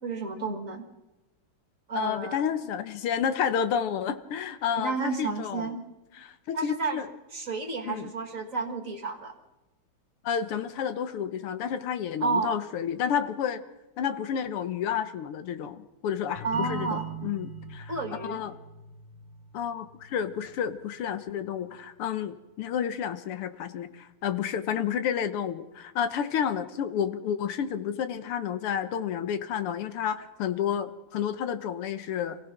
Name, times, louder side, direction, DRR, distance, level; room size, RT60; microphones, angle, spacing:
voice 1, 0.0-0.9 1.9-2.5 4.8-5.8 6.5-7.0 7.3-9.3 12.2-12.6 16.4-17.1 17.9-18.4, right 4 dB, 40° right, 6 dB, 1.9 m, -31 dB
voice 2, 1.9-5.7 6.2-7.1 7.9-8.1 10.2-13.6 14.0-18.5 19.5-32.4, left 8 dB, 80° left, 11 dB, 2.0 m, -30 dB
sound 1, 16.4-21.8, right 6 dB, 60° right, 1.8 m, -43 dB
26.5 x 16.5 x 6.0 m, 1.0 s
omnidirectional pair, 2.4 m